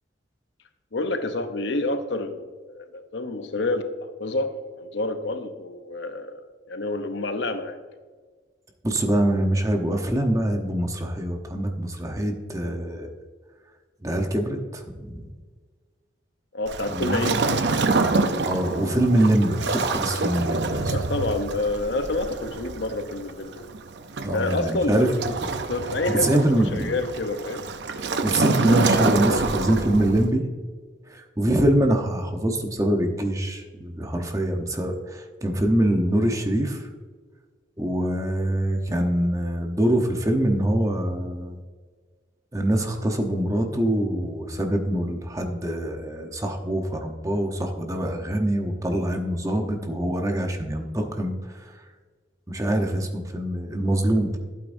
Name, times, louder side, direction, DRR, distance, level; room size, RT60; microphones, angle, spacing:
voice 1, 0.9-7.8 16.5-17.6 20.9-23.7 24.3-25.4 25.7-27.6, left 2 dB, 75° left, 8 dB, 0.9 m, -28 dB
voice 2, 8.8-13.1 14.0-15.3 16.9-17.3 18.4-20.9 24.2-25.1 26.1-26.9 28.2-30.5 31.1-36.9 37.8-41.6 42.5-51.7 52.5-54.4, right 1 dB, 20° right, 4 dB, 0.9 m, -24 dB
Waves surf, 16.7-30.3, right 3 dB, 65° right, 0.6 m, -27 dB
12.0 x 8.7 x 2.7 m, 1.5 s
head